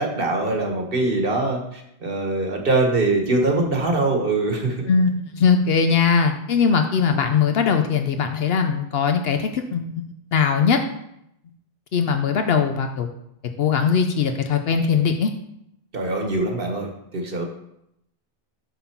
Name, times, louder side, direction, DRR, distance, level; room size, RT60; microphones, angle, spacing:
voice 1, 0.0-4.9 15.9-17.5, right 2 dB, 60° right, 3 dB, 1.4 m, -23 dB
voice 2, 4.9-10.8 11.9-13.1 13.6-15.3, left 6 dB, 70° left, 6 dB, 0.8 m, -20 dB
8.1 x 3.8 x 5.8 m, 0.78 s
omnidirectional pair, 1.1 m